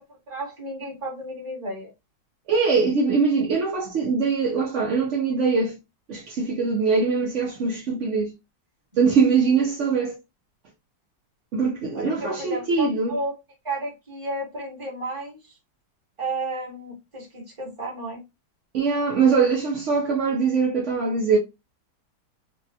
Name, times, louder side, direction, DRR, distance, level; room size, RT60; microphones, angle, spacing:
voice 1, 0.3-1.9 11.9-13.3 13.6-15.6 16.2-18.2, right 2 dB, 20° right, 1.1 m, -32 dB
voice 2, 2.5-5.8 6.1-8.3 9.0-10.2 11.5-13.2 18.7-21.4, right 5 dB, 75° right, 0.6 m, -22 dB
3.3 x 2.2 x 2.6 m
omnidirectional pair, 2.0 m